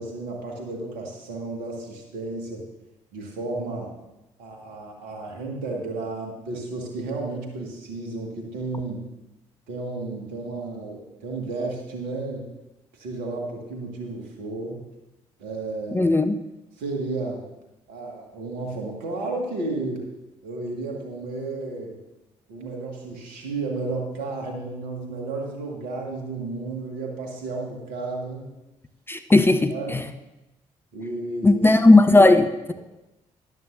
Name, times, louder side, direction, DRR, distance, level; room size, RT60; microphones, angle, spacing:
voice 1, 0.0-2.6 3.1-3.9 4.4-9.0 9.7-12.5 13.0-14.8 15.4-16.1 16.8-17.4 17.9-20.0 20.4-22.0 22.5-28.5 29.7-30.0 30.9-31.6, right 3 dB, 65° right, 0 dB, 1.9 m, -32 dB
voice 2, 15.9-16.4 29.1-30.0 31.4-32.7, left 2 dB, 15° left, 9 dB, 0.6 m, -16 dB
13.0 x 11.0 x 2.6 m, 0.99 s
figure-of-eight pair, 40°, 17 cm